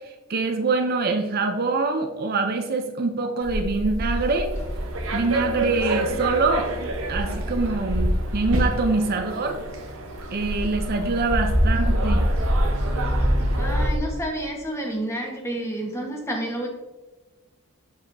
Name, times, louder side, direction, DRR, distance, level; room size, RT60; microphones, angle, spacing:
voice 1, 0.3-4.5 5.1-6.7 7.1-9.6 10.3-12.2, right 3 dB, 45° right, 5 dB, 0.5 m, -24 dB
sound 1, 3.4-8.9 9.4-14.0, equal, 45° left, 2.2 m, -25 dB
sound 2, 4.5-13.9, right 2 dB, 60° right, 0.9 m, -31 dB
voice 2, 13.6-16.7, right 1 dB, 10° left, 0 dB, 1.2 m, -29 dB
7.2 x 6.4 x 2.6 m, 1.2 s
head